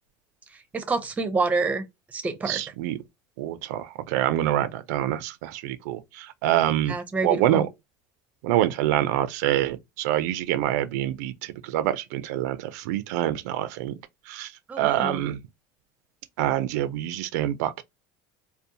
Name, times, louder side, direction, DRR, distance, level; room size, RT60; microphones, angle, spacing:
voice 1, 0.7-1.8 2.1-2.6 6.9-7.6 14.7-15.2, right 3 dB, 15° right, 0.5 m, -27 dB
voice 2, 2.5-3.0 3.4-6.9 7.2-7.7 8.4-13.9 14.3-15.4 16.4-17.8, right 13 dB, 80° right, 0.4 m, -26 dB
2.5 x 2.1 x 2.7 m
supercardioid pair, 135°, 9 cm